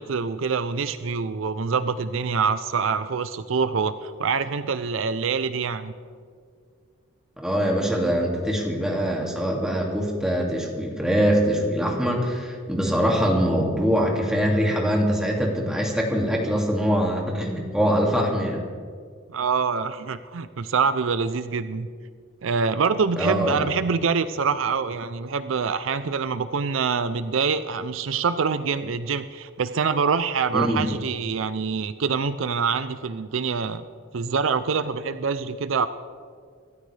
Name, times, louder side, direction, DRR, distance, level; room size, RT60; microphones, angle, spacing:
voice 1, 0.0-5.9 19.3-21.9 22.4-33.8 34.1-35.9, right 5 dB, 70° right, 12 dB, 0.5 m, -25 dB
voice 2, 7.4-18.7 23.2-23.6 30.5-30.9, equal, 5° right, -1 dB, 2.3 m, -23 dB
26.0 x 13.0 x 3.3 m, 2.1 s
head